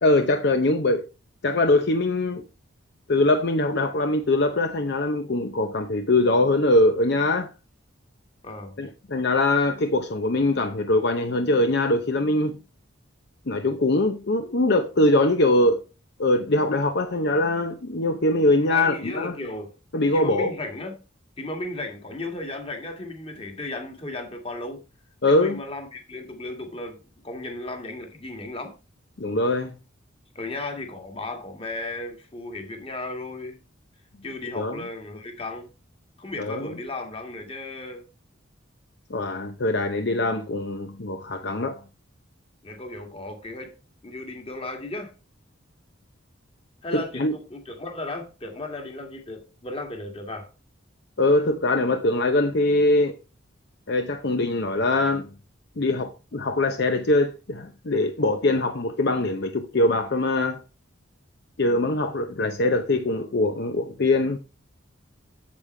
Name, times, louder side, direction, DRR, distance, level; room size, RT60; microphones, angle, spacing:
voice 1, 0.0-1.1 1.4-2.4 3.1-7.5 8.8-12.6 13.5-15.8 16.2-19.3 19.9-20.5 25.2-25.6 29.2-29.7 34.6-34.8 36.4-36.8 39.1-41.8 46.9-47.3 51.2-53.2 53.9-55.3 55.8-60.6 61.6-64.4, left 2 dB, 55° left, 0.7 m, -22 dB
voice 2, 8.4-8.7 18.6-19.7 20.1-21.0 21.4-24.8 25.3-27.0 27.2-28.7 30.3-33.6 34.2-35.7 36.2-38.0 42.6-43.7 44.0-45.1 46.8-50.5, left 2 dB, 30° left, 1.8 m, -35 dB
8.7 x 7.3 x 3.2 m
head